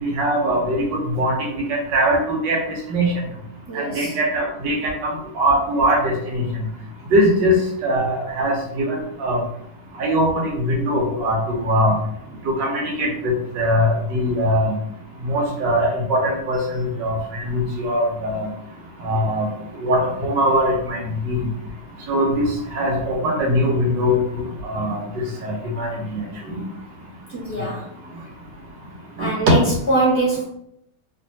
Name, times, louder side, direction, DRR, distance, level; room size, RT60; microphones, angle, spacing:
voice 1, 0.0-2.6 2.9-3.1 3.7-6.4 7.1-9.4 10.0-11.9 12.5-14.7 15.2-18.5 19.0-19.5 19.8-21.0 21.2-21.4 22.1-25.0 25.4-26.6 29.2-29.3, equal, 85° right, 0 dB, 1.5 m, -21 dB
voice 2, 3.7-4.1 27.3-27.9 29.2-30.4, right 2 dB, 10° right, -7 dB, 1.0 m, -23 dB
3.2 x 2.5 x 2.6 m, 0.74 s
omnidirectional pair, 1.9 m